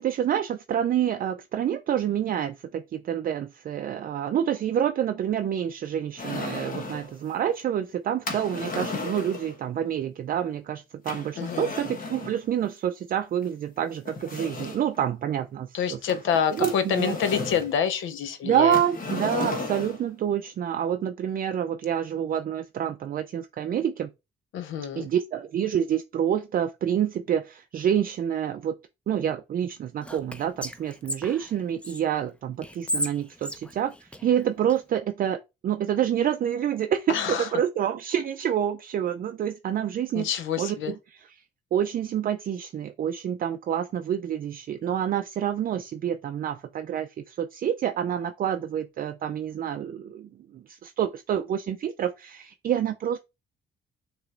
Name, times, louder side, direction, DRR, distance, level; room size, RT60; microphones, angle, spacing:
voice 1, 0.0-16.0 16.5-17.2 18.4-24.1 25.0-28.8 29.1-35.4 35.6-40.3 40.6-41.0 41.7-53.2, right 9 dB, 45° right, 0.4 m, -27 dB
sound 1, 6.2-7.1 8.2-9.6 11.1-12.4 13.4-13.5 14.0-15.0 16.1-17.7 18.7-20.1, left 3 dB, 45° left, 1.3 m, -34 dB
voice 2, 11.4-11.7 15.7-18.8 24.5-25.1 37.1-37.5 40.1-40.9, left 7 dB, 80° left, 0.6 m, -27 dB
Whispering, 30.0-32.0 32.6-34.8, left 1 dB, 5° left, 0.5 m, -34 dB
6.3 x 3.0 x 2.4 m
cardioid pair, 90°, 20 cm